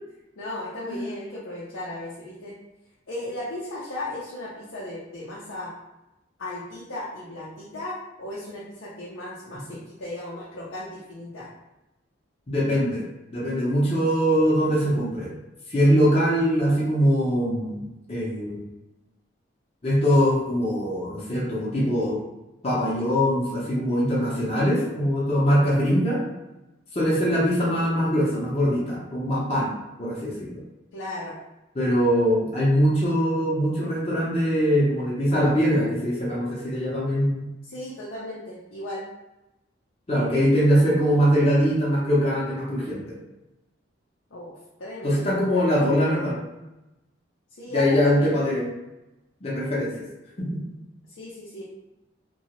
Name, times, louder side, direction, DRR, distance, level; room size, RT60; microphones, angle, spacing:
voice 1, 0.4-2.5 3.1-5.7 6.4-11.5 30.9-31.4 37.6-39.0 44.3-44.5 44.8-45.8 47.6-48.3 51.1-51.6, left 1 dB, 85° left, -6 dB, 0.6 m, -36 dB
voice 2, 12.5-13.0 13.3-15.3 15.7-17.8 18.1-18.6 19.8-22.2 22.6-26.2 26.9-29.7 30.0-30.5 31.7-37.5 40.1-43.2 45.0-46.4 47.7-48.7 49.4-50.0 50.4-50.6, equal, 30° left, -7 dB, 0.6 m, -22 dB
2.8 x 2.2 x 2.9 m, 0.97 s
head